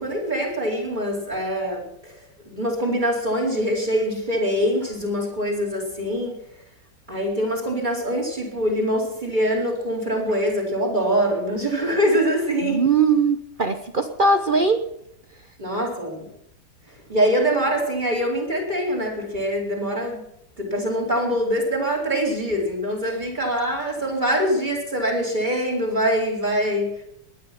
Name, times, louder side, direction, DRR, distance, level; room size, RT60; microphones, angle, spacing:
voice 1, 0.0-6.3 7.1-12.9 15.6-16.3 17.1-20.2 20.6-26.9, equal, 20° right, 0 dB, 4.2 m, -24 dB
voice 2, 12.6-14.9, right 4 dB, 70° right, 8 dB, 0.4 m, -20 dB
19.0 x 10.5 x 5.9 m, 0.77 s
omnidirectional pair, 2.3 m